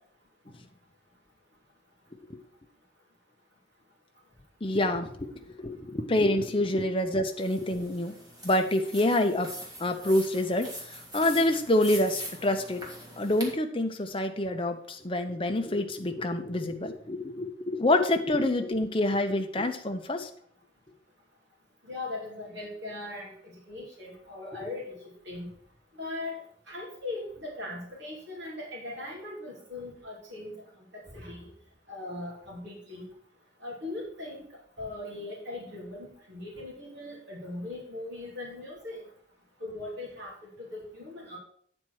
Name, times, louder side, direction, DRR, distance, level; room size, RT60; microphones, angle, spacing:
voice 1, 4.6-5.3 5.6-8.1 8.4-9.5 9.8-10.7 11.1-12.8 13.2-20.3, left 1 dB, 25° left, 5 dB, 0.8 m, -27 dB
sound 1, 7.4-13.5, equal, 20° right, 1.8 m, -43 dB
voice 2, 21.8-24.9 25.2-25.5 26.0-26.4 26.7-30.5 30.9-31.4 31.9-33.0 33.6-39.0 39.6-40.3 40.6-41.4, left 2 dB, 60° right, -3 dB, 2.9 m, -39 dB
8.9 x 4.4 x 6.2 m, 0.64 s
head